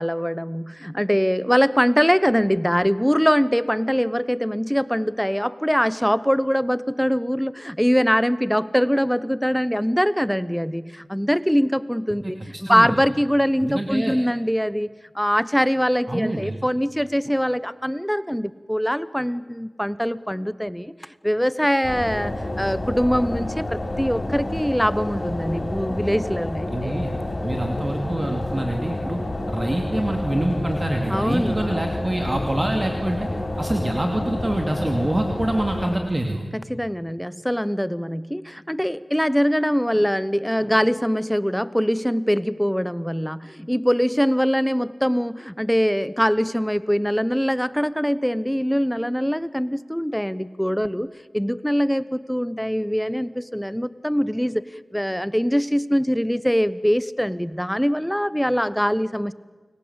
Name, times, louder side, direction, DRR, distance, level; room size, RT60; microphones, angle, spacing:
voice 1, 0.0-14.9 15.1-20.9 21.2-27.0 31.1-31.8 36.5-51.1 51.3-54.6 54.9-59.3, equal, 5° left, 16 dB, 0.9 m, -23 dB
voice 2, 13.6-14.2 16.1-16.6 26.7-27.1 27.4-29.2 29.5-33.3 33.6-36.4, right 1 dB, 30° right, 3 dB, 2.5 m, -25 dB
sound 1, 21.8-36.0, left 1 dB, 60° left, 5.9 m, -29 dB
30.0 x 22.5 x 8.2 m, 1.3 s
wide cardioid pair, 45°, 0 cm